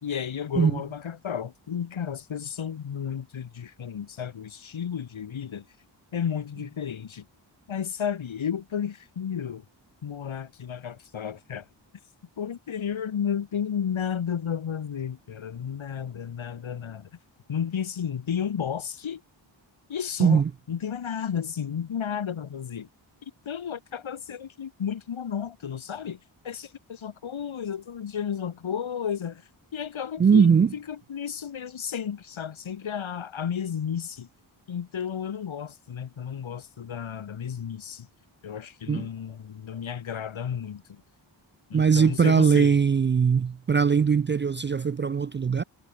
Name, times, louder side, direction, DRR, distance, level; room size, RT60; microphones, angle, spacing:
voice 1, 0.0-5.7 6.1-7.3 7.7-9.6 10.0-11.7 12.4-17.1 17.5-19.2 19.9-20.4 20.7-22.9 23.2-29.4 29.7-34.3 34.7-38.1 38.4-41.0 41.7-42.8, left 8 dB, 80° left, 2.1 m, -32 dB
voice 2, 30.2-30.7 38.9-39.1 41.7-45.6, right 6 dB, 25° right, 0.3 m, -20 dB
cardioid pair, 65°, 47 cm